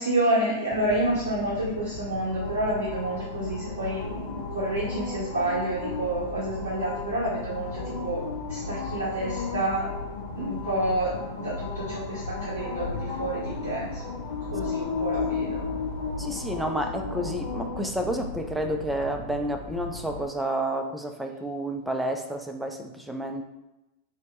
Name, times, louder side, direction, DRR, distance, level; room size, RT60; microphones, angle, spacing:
voice 1, 0.0-8.2 8.5-9.9 10.3-14.0 14.5-15.6, right 1 dB, 65° right, -6 dB, 0.7 m, -29 dB
sound 1, 0.7-20.2, left 4 dB, 55° left, 0.5 m, -34 dB
voice 2, 16.2-23.5, right 1 dB, 5° right, 4 dB, 0.3 m, -30 dB
2.7 x 2.1 x 3.0 m, 0.95 s
figure-of-eight pair, 90°, 0 cm